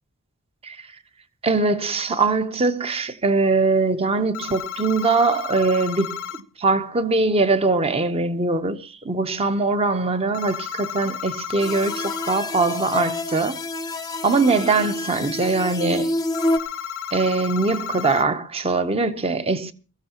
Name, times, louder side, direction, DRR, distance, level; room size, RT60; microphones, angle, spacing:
voice 1, 1.4-6.2 6.6-13.6 14.2-16.1 17.1-19.7, right 3 dB, 25° right, 0.7 m, -22 dB
sound 1, 4.3-6.4 10.3-12.4 16.3-18.2, left 8 dB, 65° left, 0.6 m, -33 dB
sound 2, 11.6-16.6, left 2 dB, 15° left, 0.6 m, -27 dB
22.0 x 14.0 x 2.9 m
head